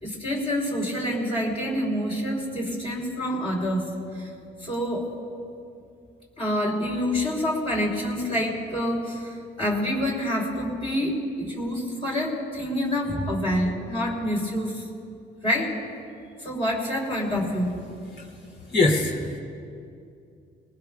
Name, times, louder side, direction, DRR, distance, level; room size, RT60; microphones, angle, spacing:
voice 1, 0.0-4.3 4.6-5.1 6.4-14.8 15.4-15.7 16.4-17.7, equal, 30° left, -4 dB, 3.2 m, -27 dB
voice 2, 18.7-19.4, left 2 dB, 60° left, -1 dB, 2.6 m, -22 dB
21.5 x 19.5 x 2.3 m, 2.5 s
cardioid pair, 90°, 20 cm